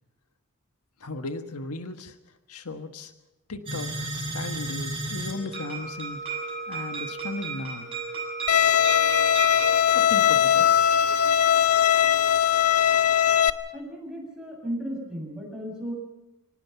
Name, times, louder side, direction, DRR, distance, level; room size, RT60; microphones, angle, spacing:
voice 1, 1.0-2.2 2.5-3.1 3.5-7.9 9.9-10.7, left 2 dB, 90° left, 7 dB, 1.5 m, -36 dB
sound 1, 3.7-9.8, right 3 dB, 25° right, 6.6 m, -33 dB
Bowed string instrument, 8.5-13.5, left 9 dB, 70° left, 0.8 m, -20 dB
voice 2, 13.7-15.9, equal, 5° right, 0 dB, 7.7 m, -35 dB
24.5 x 19.0 x 5.8 m, 0.98 s
head